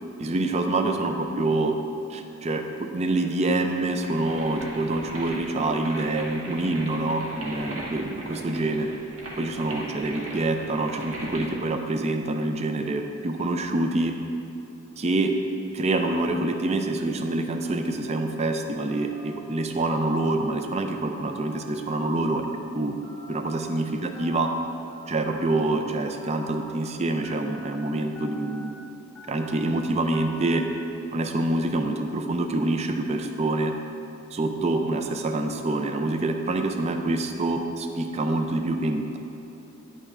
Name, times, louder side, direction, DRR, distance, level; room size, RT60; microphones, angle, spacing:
voice 1, 0.2-1.8 2.1-8.9 9.4-14.2 15.0-15.3 15.7-22.5 22.7-23.0 23.3-24.5 25.1-28.7 29.3-30.7 31.1-33.7 34.3-39.2, right 2 dB, 30° right, 5 dB, 0.4 m, -26 dB
sound 1, 4.0-11.6, right 1 dB, 65° right, 1.1 m, -39 dB
Telephone, 18.9-19.4 19.9-20.5 21.0-21.6 22.0-22.6 23.0-23.6 24.1-24.7 25.2-25.8 26.2-26.7 27.2-27.7 28.1-28.7 29.1-29.7 30.1-30.7, equal, 5° left, 0.7 m, -46 dB
9.6 x 8.3 x 2.4 m, 3.0 s
head